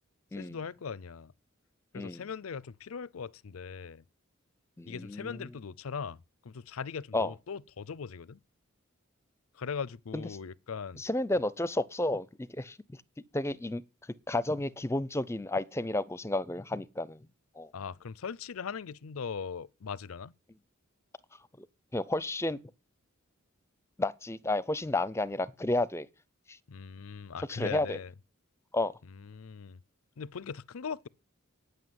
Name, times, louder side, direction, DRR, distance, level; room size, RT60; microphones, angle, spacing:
voice 1, 0.3-1.3 1.9-4.0 4.8-8.4 9.5-11.0 17.7-20.3 26.7-28.1 29.1-29.8 30.2-31.1, left 6 dB, 90° left, 0.5 m, -40 dB
voice 2, 1.9-2.2 4.8-5.5 7.1-7.3 10.1-10.2 11.0-12.8 13.3-13.8 14.3-17.2 17.6-17.7 21.6-21.7 21.9-22.6 24.0-26.1 26.5-26.6 27.5-28.0 28.7-28.9, left 2 dB, 15° left, 0.5 m, -31 dB
9.2 x 8.0 x 9.3 m
head